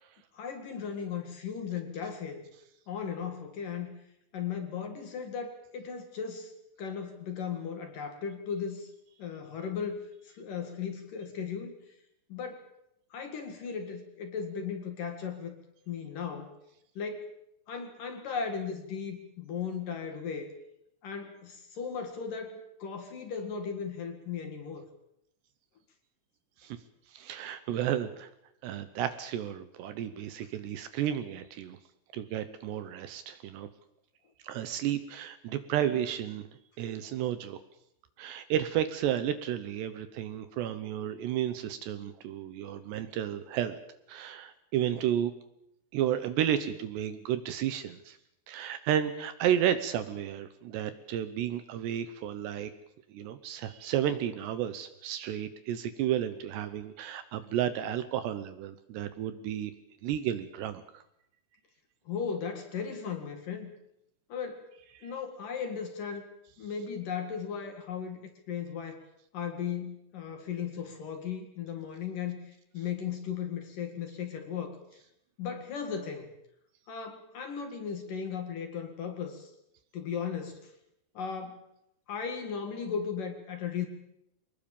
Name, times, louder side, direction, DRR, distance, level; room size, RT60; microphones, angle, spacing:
voice 1, 0.3-2.4 2.9-3.9 4.3-6.5 6.8-8.9 9.2-11.8 12.3-12.7 13.1-15.5 15.9-16.5 17.0-17.3 17.7-20.5 21.0-24.9 62.1-63.7 64.3-64.7 65.0-66.2 66.6-69.0 69.3-74.8 75.4-76.3 76.9-79.5 79.9-80.7 81.1-81.6 82.1-83.9, left 7 dB, 55° left, 6 dB, 3.0 m, -36 dB
voice 2, 27.1-28.3 28.6-31.8 32.1-33.7 34.4-36.5 36.8-37.6 38.2-43.8 44.1-45.3 45.9-48.2 48.5-52.7 53.1-59.7 60.0-61.0 65.0-65.1, right 10 dB, 75° right, 12 dB, 2.9 m, -32 dB
24.5 x 20.0 x 7.2 m, 0.78 s
omnidirectional pair, 5.6 m